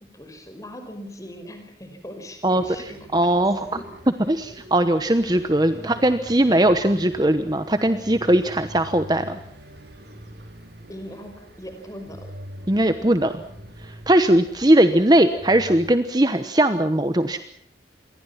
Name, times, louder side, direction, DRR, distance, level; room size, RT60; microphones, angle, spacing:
voice 1, 0.1-3.2 3.7-3.8 5.8-5.9 10.9-12.3, equal, 20° left, 6 dB, 5.2 m, -40 dB
sound 1, 2.5-15.9, equal, 70° right, 4.7 m, -44 dB
voice 2, 3.1-3.8 4.3-9.4 12.7-13.4 13.8-17.4, right 1 dB, 20° right, 10 dB, 1.0 m, -19 dB
27.5 x 22.5 x 5.8 m, 0.63 s
head